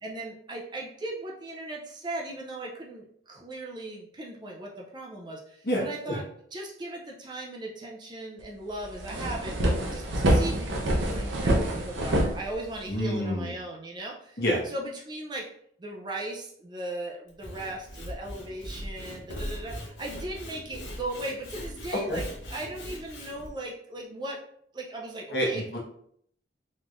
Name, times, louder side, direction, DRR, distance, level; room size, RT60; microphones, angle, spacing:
voice 1, 0.0-6.2 6.5-15.4 15.8-24.4 24.7-25.6, right 1 dB, 25° right, -1 dB, 0.5 m, -38 dB
sound 1, 8.4-8.5 8.8-13.0, right 1 dB, 85° right, 0.7 m, -26 dB
voice 2, 12.9-13.5 14.4-14.6 22.1-22.2 25.3-25.8, equal, 60° left, -3 dB, 1.1 m, -27 dB
Sawing / Wood, 17.3-23.5, equal, 85° left, 0.9 m, -40 dB
3.7 x 3.1 x 2.5 m, 0.66 s
head